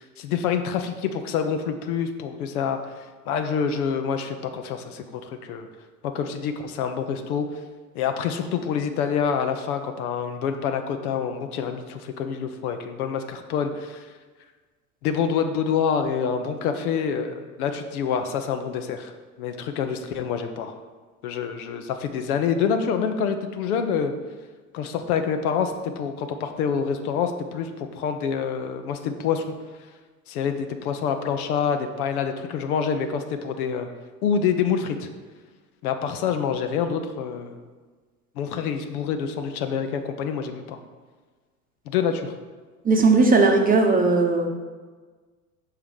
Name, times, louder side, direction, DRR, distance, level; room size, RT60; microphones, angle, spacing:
voice 1, 0.0-2.9 3.3-5.7 6.1-7.6 7.9-14.0 15.0-19.1 19.4-20.7 21.2-24.1 24.7-29.5 30.3-33.9 34.2-35.1 35.8-37.6 38.4-40.8 41.9-42.3, left 7 dB, 70° left, 7 dB, 0.8 m, -26 dB
voice 2, 42.8-44.5, right 3 dB, 20° right, 3 dB, 0.8 m, -18 dB
5.8 x 4.7 x 5.2 m, 1.4 s
hypercardioid pair, 75°, 46 cm